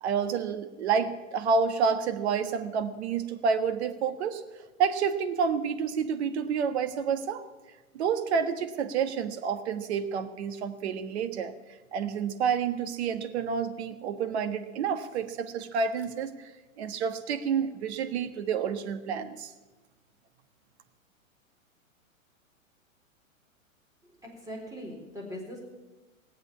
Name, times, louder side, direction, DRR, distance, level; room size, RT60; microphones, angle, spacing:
voice 1, 0.0-4.4 4.8-7.4 7.9-11.5 11.9-16.5 16.8-19.5, right 6 dB, 50° right, 9 dB, 1.5 m, -29 dB
voice 2, 24.0-25.6, equal, 10° right, -1 dB, 4.1 m, -41 dB
18.5 x 8.1 x 8.6 m, 1.2 s
figure-of-eight pair, 110°, 41 cm